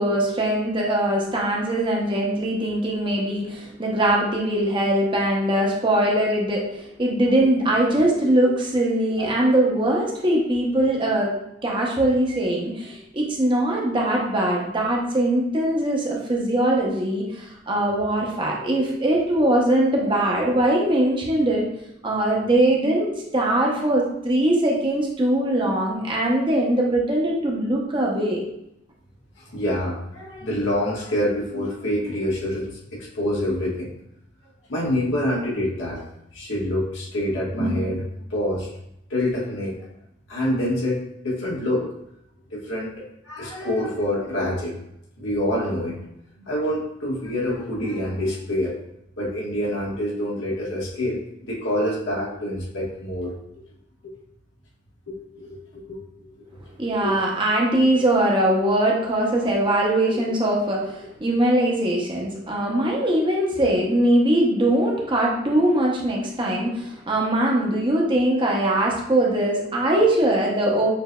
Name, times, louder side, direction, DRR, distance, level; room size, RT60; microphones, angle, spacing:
voice 1, 0.0-11.3 11.6-21.6 22.0-28.4 56.8-70.9, right 1 dB, 25° right, -2 dB, 0.7 m, -21 dB
voice 2, 29.4-33.9 34.7-36.0 36.3-38.7 39.1-39.8 40.3-41.9 42.5-44.8 45.2-46.0 46.4-48.8 49.2-53.3 55.1-56.0 56.3-56.6 56.8-57.2 59.5-59.6 64.9-65.0 70.1-70.2, left 1 dB, 75° left, -5 dB, 1.4 m, -26 dB
6.6 x 2.6 x 2.2 m, 0.79 s
head